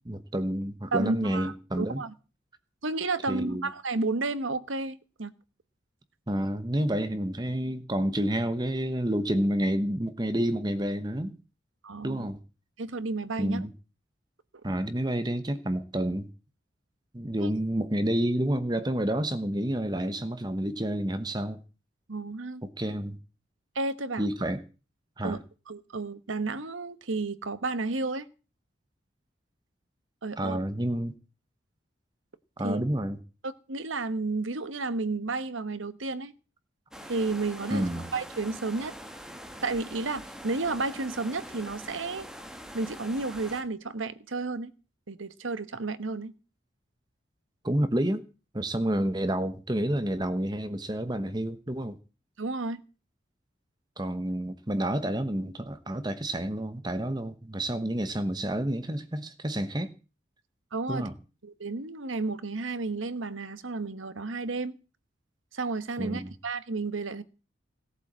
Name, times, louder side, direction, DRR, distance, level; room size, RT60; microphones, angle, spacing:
voice 1, 0.0-2.0 3.3-3.7 6.3-11.3 12.0-12.4 13.4-13.7 14.6-16.3 17.1-21.6 22.6-23.2 24.2-24.6 25.2-25.4 30.4-31.1 32.6-33.2 37.7-38.1 47.6-48.2 48.5-52.0 54.0-59.9 60.9-61.1 66.0-66.3, right 1 dB, 20° right, 1.1 m, -29 dB
voice 2, 0.9-2.1 2.8-5.3 11.8-12.3 12.8-13.6 22.1-22.6 23.7-24.3 25.2-25.4 25.7-28.3 30.2-30.6 32.6-32.8 33.4-36.3 37.1-38.9 39.6-42.3 42.7-44.7 45.1-46.3 52.4-52.8 60.7-61.1 61.4-64.8 65.5-67.2, right 3 dB, 85° right, 1.2 m, -32 dB
sound 1, 36.9-43.6, equal, 5° right, 1.8 m, -44 dB
17.5 x 8.2 x 7.5 m
head